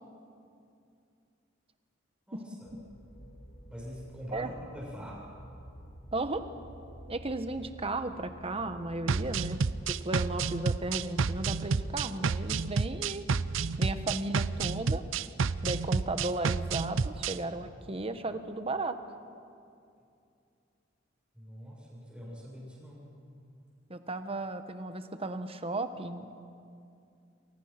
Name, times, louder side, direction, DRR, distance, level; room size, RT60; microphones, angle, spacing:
voice 1, 2.3-2.7 3.7-5.3 21.3-23.2, equal, 5° right, -4 dB, 7.9 m, -44 dB
sound 1, 2.6-13.1, equal, 70° left, 5.0 m, -49 dB
voice 2, 6.1-6.5 7.1-9.6 9.9-13.3 13.8-15.0 15.6-19.0 23.9-26.3, right 2 dB, 30° right, 9 dB, 1.3 m, -35 dB
sound 2, 9.1-17.4, right 5 dB, 75° right, 0.6 m, -30 dB
29.0 x 24.0 x 6.0 m, 2.5 s
head